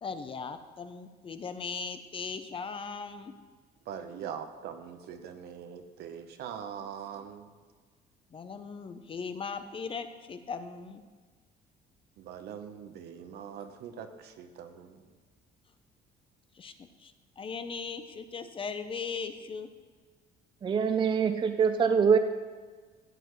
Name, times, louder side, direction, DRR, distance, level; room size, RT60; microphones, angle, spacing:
voice 1, 0.0-3.3 8.3-11.0 16.5-16.7 17.0-19.7, left 5 dB, 30° left, 9 dB, 0.6 m, -38 dB
voice 2, 3.9-7.5 12.2-15.0, right 8 dB, 75° right, 8 dB, 0.9 m, -42 dB
voice 3, 20.6-22.2, right 6 dB, 30° right, 8 dB, 0.5 m, -24 dB
13.0 x 7.9 x 3.1 m, 1.5 s
cardioid pair, 110°, 17 cm